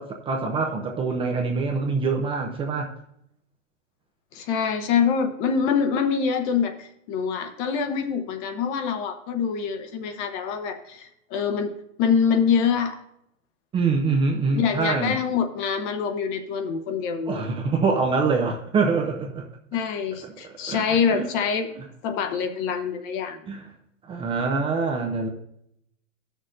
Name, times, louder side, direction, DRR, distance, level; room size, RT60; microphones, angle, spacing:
voice 1, 0.0-2.9 13.7-15.2 17.3-19.5 20.4-21.2 23.5-23.6 24.1-25.3, right 4 dB, 15° right, 1 dB, 0.5 m, -25 dB
voice 2, 4.3-11.7 12.0-13.0 14.4-17.4 19.7-21.7 22.0-23.5, left 6 dB, 40° left, 7 dB, 1.0 m, -25 dB
14.0 x 6.4 x 2.6 m, 0.76 s
hypercardioid pair, 135°, 38 cm